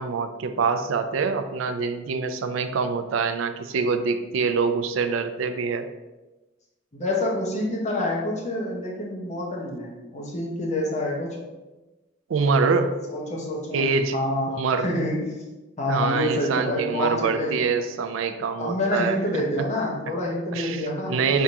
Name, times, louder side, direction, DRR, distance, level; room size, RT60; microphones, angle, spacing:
voice 1, 0.0-5.9 12.3-12.9 13.7-14.2 14.6-14.9 15.9-19.4 20.5-21.4, right 5 dB, 80° right, 8 dB, 0.4 m, -25 dB
voice 2, 6.9-11.4 13.1-13.8 14.1-15.4 15.8-17.6 18.6-21.2, left 1 dB, 35° left, -2 dB, 1.1 m, -27 dB
3.5 x 2.8 x 4.6 m, 1.1 s
head